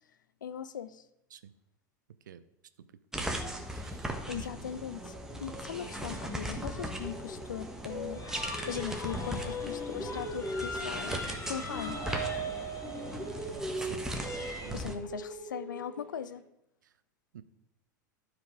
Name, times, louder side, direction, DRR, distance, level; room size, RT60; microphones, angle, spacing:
voice 1, 0.4-1.0 4.3-12.0 14.7-16.4, left 8 dB, 75° left, 14 dB, 0.6 m, -40 dB
sound 1, 3.1-14.9, right 1 dB, 5° right, 1.3 m, -38 dB
voice 2, 3.7-4.5 13.8-14.0 14.6-14.8 17.3-17.4, right 9 dB, 75° right, 14 dB, 0.6 m, -49 dB
sound 2, 5.8-14.7, equal, 30° left, 2.0 m, -41 dB
sound 3, 6.5-9.3 9.6-12.6 12.8-16.3, right 1 dB, 10° left, 2.0 m, -42 dB
12.0 x 4.9 x 4.8 m, 0.80 s
figure-of-eight pair, 85°, 10 cm